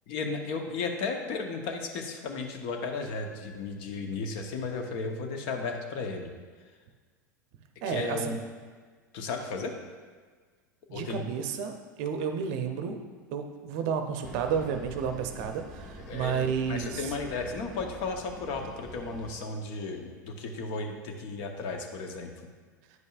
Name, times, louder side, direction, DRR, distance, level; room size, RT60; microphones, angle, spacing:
voice 1, 0.1-6.3 7.8-8.4 9.1-9.7 10.9-11.3 16.1-16.4 16.7-22.3, left 4 dB, 50° left, 4 dB, 0.9 m, -34 dB
voice 2, 7.8-8.4 10.9-13.0 13.3-17.2, right 7 dB, 55° right, 6 dB, 0.6 m, -31 dB
sound 1, 14.2-19.4, equal, ahead, 0.8 m, -45 dB
9.3 x 5.3 x 2.4 m, 1.5 s
hypercardioid pair, 90°, 10 cm